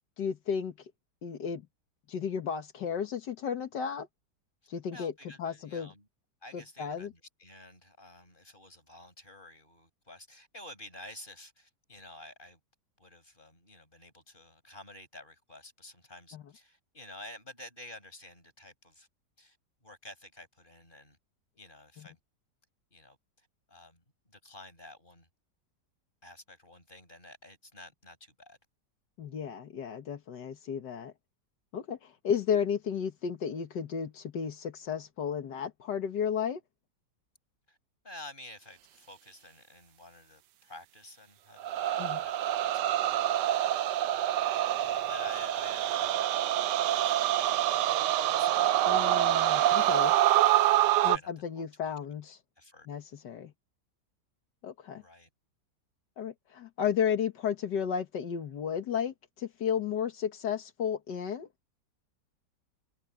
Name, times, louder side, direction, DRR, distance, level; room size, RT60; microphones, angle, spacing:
voice 1, 0.2-0.7 1.2-1.7 2.1-4.1 4.7-5.1 5.4-5.9 6.5-7.1 16.3-16.4 22.0-22.1 29.2-31.1 31.7-36.6 42.0-42.2 48.9-50.1 51.0-52.4 52.9-53.5 54.6-55.0 56.2-61.5, left 7 dB, 80° left, 2.0 m, -33 dB
voice 2, 4.9-6.1 6.4-12.6 13.0-19.1 19.4-21.2 21.6-22.2 22.9-25.3 26.2-28.6 37.7-37.8 38.0-48.7 49.3-50.0 50.7-51.9 52.6-52.9 54.9-55.3, left 1 dB, 30° left, 7.0 m, -51 dB
sound 1, 41.6-51.2, right 13 dB, 85° right, 1.3 m, -26 dB
omnidirectional pair, 1.8 m